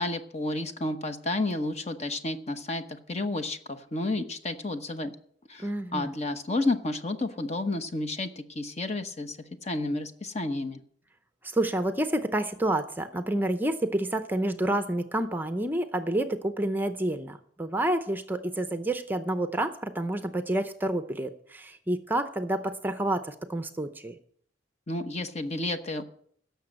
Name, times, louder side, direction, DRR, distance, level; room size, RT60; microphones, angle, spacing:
voice 1, 0.0-5.1 5.5-9.4 9.6-10.8 24.9-26.0, left 2 dB, 35° left, 8 dB, 1.0 m, -31 dB
voice 2, 5.6-6.1 11.4-24.2, right 1 dB, 10° right, 9 dB, 0.7 m, -29 dB
17.0 x 6.9 x 6.5 m, 0.62 s
head